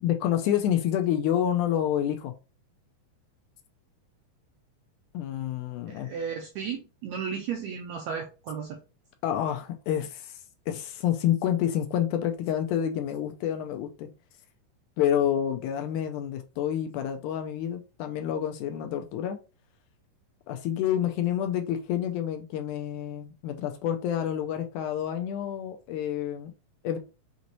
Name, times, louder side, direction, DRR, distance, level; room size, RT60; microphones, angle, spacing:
voice 1, 0.0-2.3 5.1-6.1 9.2-10.4 10.7-14.1 15.0-19.4 20.5-26.5 26.8-27.0, left 10 dB, 80° left, 6 dB, 1.9 m, -28 dB
voice 2, 5.9-8.8, right 6 dB, 80° right, 3 dB, 1.6 m, -34 dB
6.0 x 2.7 x 2.9 m, 0.31 s
omnidirectional pair, 3.8 m